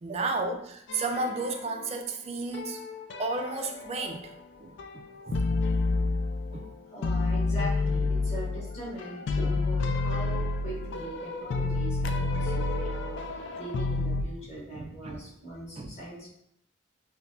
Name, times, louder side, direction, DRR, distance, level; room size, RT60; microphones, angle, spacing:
voice 1, 0.0-2.8 3.2-4.3 4.6-5.5 6.0-6.1 6.5-6.7 9.4-9.6 14.7-15.2 15.8-15.9, right 3 dB, 30° right, 5 dB, 0.3 m, -33 dB
sound 1, 0.9-2.1 2.5-4.4 4.8-6.7 7.0-14.2, left 3 dB, 60° left, 0.3 m, -30 dB
voice 2, 6.9-16.3, right 1 dB, 35° left, -6 dB, 1.4 m, -41 dB
5.9 x 2.0 x 2.6 m, 0.74 s
head